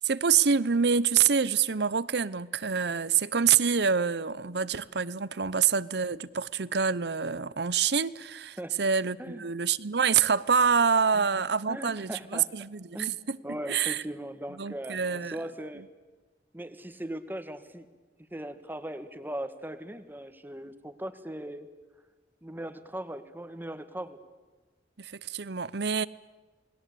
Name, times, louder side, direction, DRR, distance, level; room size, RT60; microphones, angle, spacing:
voice 1, 0.0-13.4 13.7-14.0 14.6-15.4 25.0-26.1, right 6 dB, 70° right, 0.8 m, -26 dB
voice 2, 9.2-9.5 11.1-11.3 11.7-12.5 12.9-15.8 16.5-17.9 18.3-21.7 22.4-24.2, right 1 dB, 10° right, 1.7 m, -39 dB
29.0 x 21.0 x 8.6 m
head